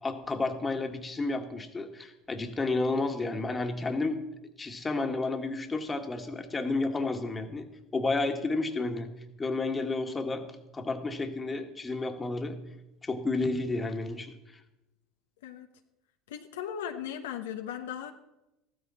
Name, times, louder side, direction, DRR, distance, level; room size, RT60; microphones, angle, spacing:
voice 1, 0.0-4.2 4.6-7.7 7.9-9.1 9.4-10.5 10.7-12.6 13.0-14.3, left 3 dB, 20° left, 6 dB, 1.7 m, -31 dB
voice 2, 16.3-18.1, left 9 dB, 85° left, 5 dB, 1.0 m, -37 dB
14.5 x 13.5 x 4.2 m, 0.95 s
hypercardioid pair, 85°, 0 cm